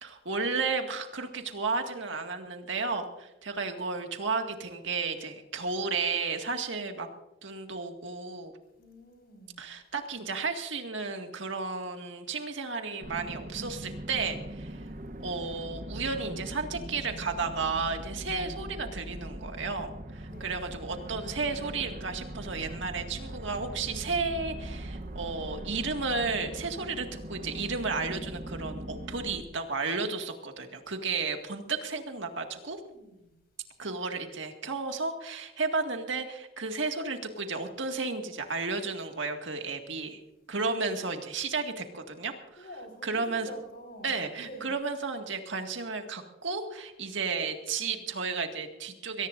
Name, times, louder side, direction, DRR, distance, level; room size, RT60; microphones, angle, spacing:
voice 1, 0.0-7.1 7.4-8.5 9.6-14.8 15.2-32.8 33.8-40.2 40.5-42.7 43.0-43.5 44.0-49.3, right 4 dB, 75° right, 4 dB, 2.0 m, -33 dB
voice 2, 8.8-9.6 20.3-20.5 31.7-32.0 32.3-33.4 42.6-44.7, equal, 50° left, 4 dB, 5.1 m, -48 dB
sound 1, 13.0-29.4, right 1 dB, 45° right, 1.0 m, -41 dB
22.5 x 18.5 x 2.6 m, 0.94 s
head